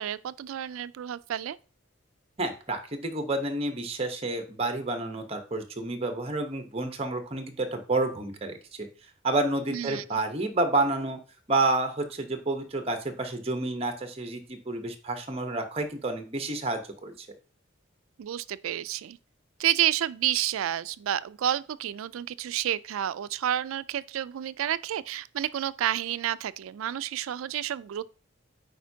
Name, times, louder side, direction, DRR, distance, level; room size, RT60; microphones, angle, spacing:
voice 1, 0.0-1.6 9.7-10.0 18.2-19.2 19.6-28.0, right 11 dB, 85° right, 0.3 m, -30 dB
voice 2, 2.4-8.9 9.2-11.2 11.5-17.3, right 2 dB, 30° right, 0.9 m, -29 dB
9.2 x 4.3 x 2.7 m
head